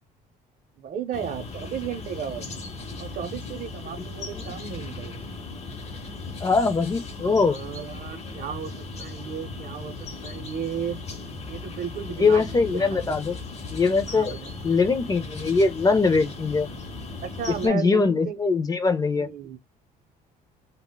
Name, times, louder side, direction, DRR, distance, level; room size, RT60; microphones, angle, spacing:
voice 1, 0.8-2.4 3.0-5.3 7.2-8.7 9.0-11.0 11.4-13.2 14.1-14.5 17.2-18.4 19.2-19.6, right 7 dB, 55° right, 0.6 m, -34 dB
sound 1, 1.1-17.7, left 3 dB, 40° left, 0.9 m, -37 dB
voice 2, 6.4-7.6 12.2-13.4 13.7-14.3 14.6-16.7 17.6-19.3, left 4 dB, 20° left, 0.4 m, -22 dB
3.5 x 2.1 x 2.2 m
cardioid pair, 110°, 17 cm